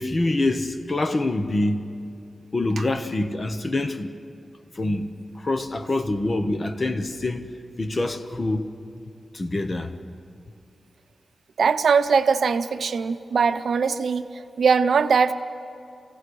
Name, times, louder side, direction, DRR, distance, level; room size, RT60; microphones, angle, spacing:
voice 1, 0.0-1.9 2.5-4.1 4.7-7.5 7.8-8.6 9.3-9.9, left 2 dB, 30° left, 0.9 m, -25 dB
voice 2, 11.6-15.3, right 5 dB, 70° right, 0.7 m, -21 dB
27.5 x 16.5 x 6.3 m
wide cardioid pair, 160°, 0 cm